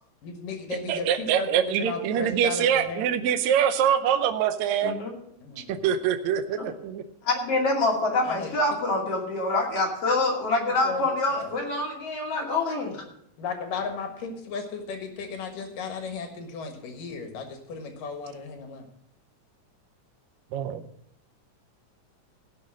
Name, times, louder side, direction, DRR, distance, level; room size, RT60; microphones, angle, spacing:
voice 1, 0.2-3.0 5.4-5.8 8.2-8.6 10.6-11.1 11.3-11.5 13.4-18.8, left 4 dB, 80° left, 4 dB, 3.2 m, -35 dB
voice 2, 0.9-4.9 5.6-7.0 20.5-20.8, right 9 dB, 70° right, 8 dB, 1.8 m, -24 dB
voice 3, 7.2-13.0, left 2 dB, 45° left, -1 dB, 3.5 m, -26 dB
17.0 x 6.3 x 6.3 m, 0.71 s
omnidirectional pair, 3.8 m